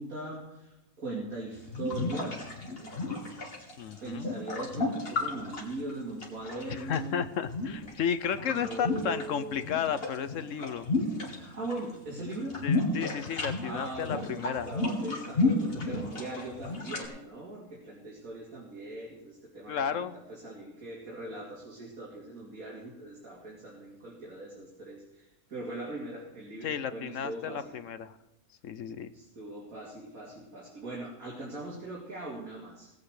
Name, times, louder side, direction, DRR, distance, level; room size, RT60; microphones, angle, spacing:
voice 1, 0.0-2.5 4.0-7.2 8.4-9.7 11.3-12.5 13.6-27.8 29.1-32.9, right 2 dB, 70° right, -5 dB, 3.1 m, -40 dB
sound 1, 1.5-7.0 7.4-9.2 9.5-11.8 12.1-17.0, left 2 dB, 40° left, 2.3 m, -32 dB
voice 2, 3.8-4.3 6.7-10.9 12.6-14.7 19.7-20.2 26.6-28.1 28.6-29.1, left 8 dB, 65° left, 12 dB, 1.0 m, -33 dB
18.0 x 8.7 x 4.9 m, 0.96 s
omnidirectional pair, 1.5 m